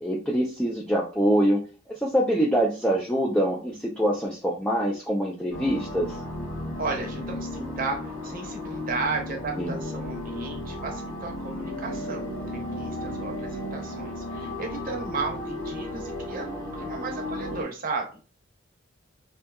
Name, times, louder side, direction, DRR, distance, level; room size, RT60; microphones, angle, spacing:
voice 1, 0.0-1.6 1.9-6.2 9.6-9.7, equal, 5° left, -3 dB, 0.4 m, -24 dB
sound 1, 5.5-17.6, left 1 dB, 90° left, 0.9 m, -34 dB
voice 2, 6.8-18.1, right 4 dB, 45° right, 1 dB, 0.7 m, -34 dB
2.6 x 2.3 x 2.3 m, 0.35 s
head